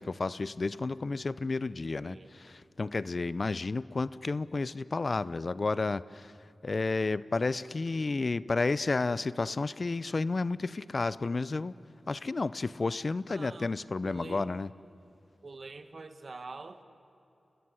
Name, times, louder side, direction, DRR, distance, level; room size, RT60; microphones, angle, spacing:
voice 1, 0.0-6.3 6.6-11.7 12.1-14.7, left 3 dB, 50° left, 18 dB, 0.6 m, -31 dB
voice 2, 13.3-13.7 14.0-14.5 15.4-16.8, right 3 dB, 60° right, 9 dB, 1.8 m, -45 dB
29.5 x 19.5 x 9.7 m, 2.9 s
cardioid pair, 55°, 0 cm